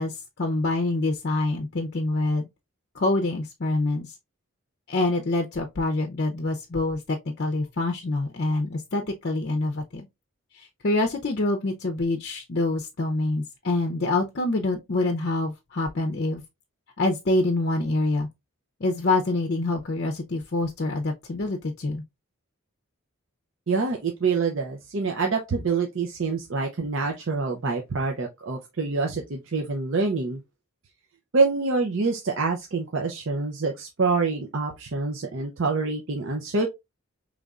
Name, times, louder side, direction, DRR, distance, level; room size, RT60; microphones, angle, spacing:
voice 1, 0.0-2.5 2.9-4.1 4.9-10.1 10.5-16.4 17.0-18.3 18.8-22.0, left 2 dB, 50° left, 0.6 m, -26 dB
voice 2, 23.7-30.4 31.3-36.7, right 4 dB, 60° right, 0.6 m, -26 dB
5.1 x 3.2 x 2.3 m
head